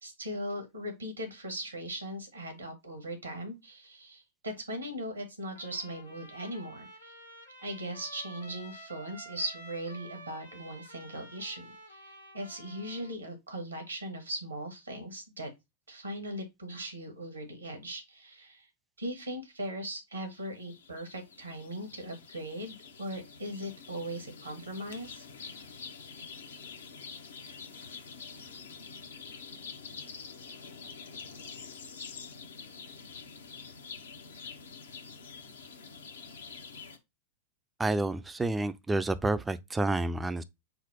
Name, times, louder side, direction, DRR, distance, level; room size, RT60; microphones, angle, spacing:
voice 1, 0.0-7.2 7.6-15.5 15.9-18.7 19.0-25.2, right 1 dB, 80° right, 1.3 m, -39 dB
Trumpet, 5.5-13.1, right 1 dB, 85° left, 1.5 m, -50 dB
sound 1, 20.3-37.0, left 5 dB, 65° left, 0.7 m, -47 dB
voice 2, 37.8-40.4, right 2 dB, 10° right, 0.4 m, -29 dB
4.4 x 2.0 x 4.3 m
figure-of-eight pair, 90°, 0 cm